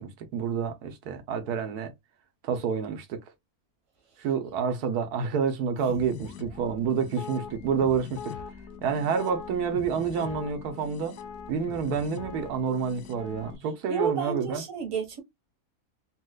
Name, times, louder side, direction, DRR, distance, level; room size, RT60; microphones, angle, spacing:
voice 1, 0.0-1.9 2.4-3.2 4.2-8.4 8.8-11.2 11.5-14.6, right 6 dB, 85° right, 1.3 m, -28 dB
sound 1, 5.9-13.6, left 7 dB, 85° left, 1.1 m, -42 dB
voice 2, 13.9-15.2, right 6 dB, 25° right, 1.1 m, -30 dB
4.2 x 2.4 x 2.3 m
omnidirectional pair, 1.6 m